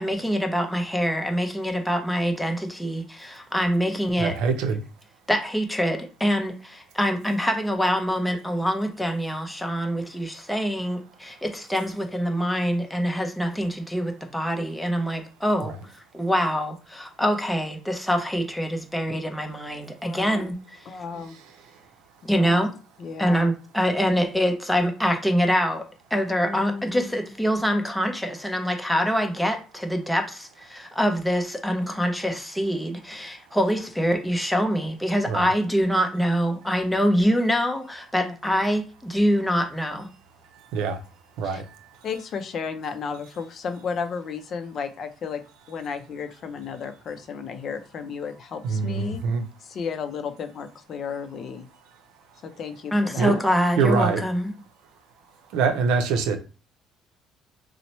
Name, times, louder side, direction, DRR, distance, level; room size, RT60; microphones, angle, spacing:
voice 1, 0.0-4.4 5.3-20.9 22.2-22.7 23.2-40.1 52.9-54.5, equal, 5° left, 0.7 m, -25 dB
voice 2, 4.2-4.8 35.3-35.5 40.7-41.0 41.4-41.6 48.6-49.4 53.2-53.3 53.8-54.2 55.5-56.4, right 5 dB, 85° right, 0.5 m, -24 dB
voice 3, 20.0-20.5 20.9-21.4 22.3-22.7 23.0-23.5 26.4-27.2 38.2-38.4 41.4-41.6 42.0-45.4 45.7-49.2 49.6-51.7 52.4-53.4, left 5 dB, 50° left, 0.5 m, -33 dB
2.9 x 2.1 x 4.1 m
cardioid pair, 120°, 0 cm